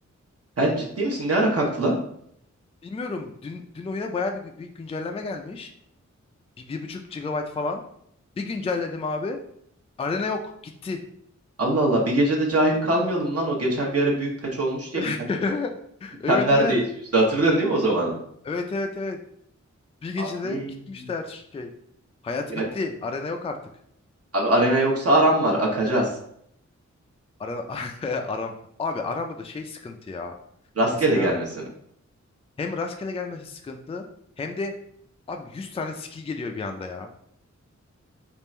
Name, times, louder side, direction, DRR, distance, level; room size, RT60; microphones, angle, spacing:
voice 1, 0.6-2.0 11.6-15.1 16.3-16.8 17.1-18.1 20.2-20.7 22.5-22.6 24.3-26.1 30.8-31.6, right 1 dB, 55° right, -2 dB, 0.9 m, -22 dB
voice 2, 2.8-5.7 6.7-7.8 8.4-9.4 10.0-10.5 10.8-11.0 15.0-15.7 16.0-16.7 18.4-19.2 20.0-20.6 20.9-21.7 22.2-23.6 27.4-28.5 28.8-30.3 31.1-31.3 32.6-34.0 34.4-34.7 35.3-37.1, left 3 dB, 20° left, 4 dB, 0.3 m, -30 dB
3.5 x 2.5 x 4.2 m, 0.69 s
wide cardioid pair, 120°, 29 cm